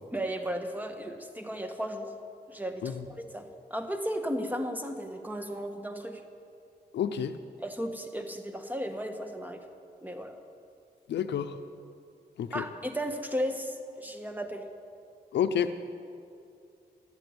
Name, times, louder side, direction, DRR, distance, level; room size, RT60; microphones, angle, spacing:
voice 1, 0.1-2.1 2.5-6.2 7.6-9.6 10.0-10.4 12.5-14.6, equal, 10° right, 6 dB, 1.4 m, -35 dB
voice 2, 6.9-7.4 11.1-11.6 12.4-12.6 15.3-15.7, left 8 dB, 90° left, 11 dB, 0.6 m, -29 dB
12.5 x 7.9 x 9.5 m, 2.4 s
cardioid pair, 55°, 18 cm